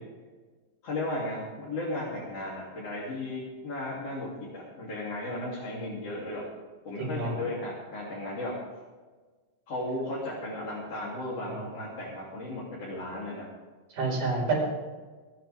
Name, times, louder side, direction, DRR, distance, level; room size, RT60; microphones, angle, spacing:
voice 1, 0.8-6.4 6.9-8.6 9.7-13.5, left 1 dB, 45° left, -8 dB, 4.2 m, -35 dB
voice 2, 7.0-7.3 11.5-11.7 13.9-14.5, right 3 dB, 65° right, -4 dB, 6.8 m, -29 dB
28.5 x 10.5 x 3.7 m, 1.3 s
omnidirectional pair, 3.9 m